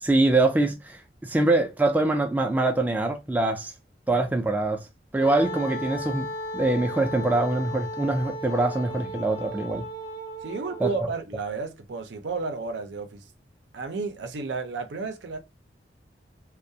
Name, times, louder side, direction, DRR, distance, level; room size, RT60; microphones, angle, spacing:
voice 1, 0.0-3.7 4.1-4.8 5.1-9.8 10.8-11.1, right 2 dB, 10° right, 0.3 m, -24 dB
Wind instrument woodwind instrument, 5.2-11.2, equal, 70° left, 0.9 m, -35 dB
voice 2, 10.4-13.3 13.7-15.4, right 4 dB, 90° right, 0.5 m, -32 dB
2.3 x 2.1 x 2.6 m
head